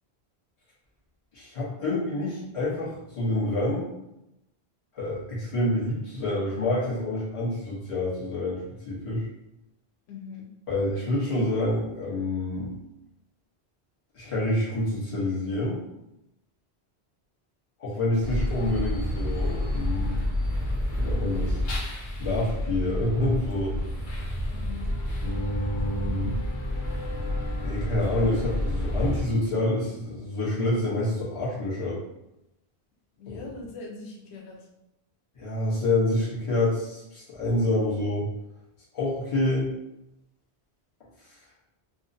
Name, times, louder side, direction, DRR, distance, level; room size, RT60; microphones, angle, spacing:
voice 1, 1.3-3.8 4.9-9.2 10.7-12.7 14.1-15.8 17.8-20.2 21.0-21.6 22.2-23.7 25.2-26.4 27.6-32.0 33.3-33.4 35.4-38.3 38.9-39.7, left 1 dB, 35° left, -7 dB, 0.8 m, -27 dB
voice 2, 10.1-10.5 24.5-24.9 33.2-34.7, left 4 dB, 90° left, -1 dB, 0.9 m, -41 dB
sound 1, 18.2-29.2, left 1 dB, 60° left, 0.7 m, -29 dB
2.6 x 2.0 x 2.5 m, 0.88 s
omnidirectional pair, 1.1 m